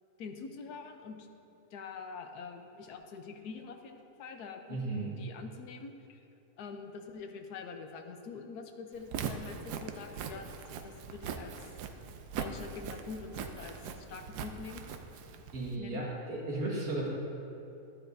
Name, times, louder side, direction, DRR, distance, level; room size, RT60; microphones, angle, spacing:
voice 1, 0.2-1.3 1.7-6.2 6.6-10.6 10.8-11.5 12.4-14.8 15.8-16.0, left 5 dB, 80° left, 5 dB, 1.3 m, -45 dB
voice 2, 4.7-5.1 15.5-17.1, right 2 dB, 65° right, -4 dB, 2.2 m, -35 dB
Walk footsteps, 9.0-15.8, right 6 dB, 85° right, 1.2 m, -41 dB
12.5 x 9.9 x 2.7 m, 2.8 s
omnidirectional pair, 1.7 m